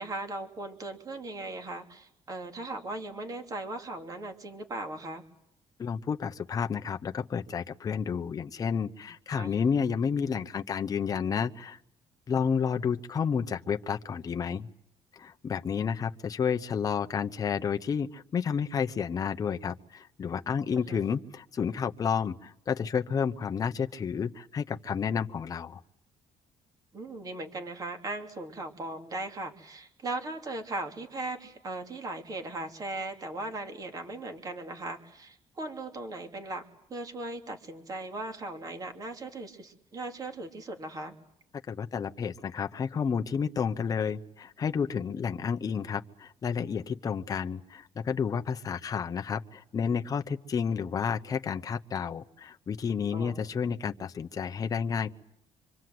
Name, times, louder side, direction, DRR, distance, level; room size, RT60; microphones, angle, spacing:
voice 1, 0.0-5.2 9.3-9.5 20.8-21.0 26.9-36.6 36.9-41.2 53.1-53.5, right 2 dB, 30° right, 4 dB, 3.0 m, -38 dB
voice 2, 5.8-11.8 12.3-14.7 15.2-25.8 41.7-55.1, left 6 dB, 30° left, 6 dB, 1.0 m, -31 dB
26.0 x 25.5 x 7.9 m, 0.75 s
cardioid pair, 155°, 12 cm